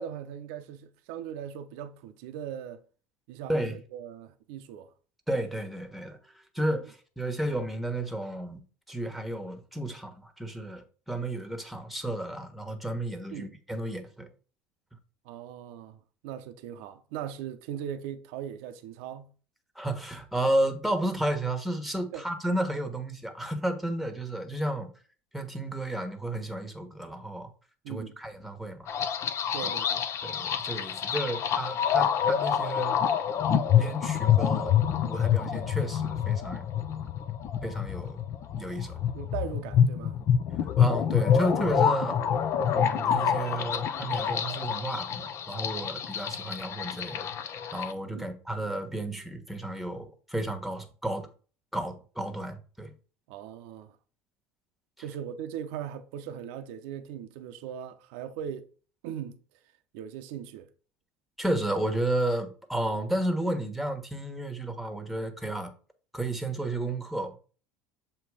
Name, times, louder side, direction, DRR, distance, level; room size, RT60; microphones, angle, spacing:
voice 1, 0.0-2.8 3.3-4.9 13.3-13.5 15.2-19.3 22.1-22.2 27.8-28.2 29.5-30.0 39.1-40.2 48.1-48.3 53.3-54.0 55.0-58.7 59.0-59.4 59.9-60.7, right 9 dB, 75° right, 0.7 m, -39 dB
voice 2, 5.3-6.2 6.5-8.6 8.9-14.3 19.7-24.9 25.3-27.5 27.9-28.9 29.6-29.7 30.2-33.0 33.8-34.8 35.1-36.7 37.6-38.2 38.6-39.0 40.8-42.2 42.7-51.3 51.7-52.9 61.4-65.7 66.1-67.4, right 1 dB, ahead, 1.3 m, -32 dB
sound 1, 28.9-47.9, left 8 dB, 45° left, 0.6 m, -27 dB
6.9 x 2.9 x 4.8 m
hypercardioid pair, 85°, 7 cm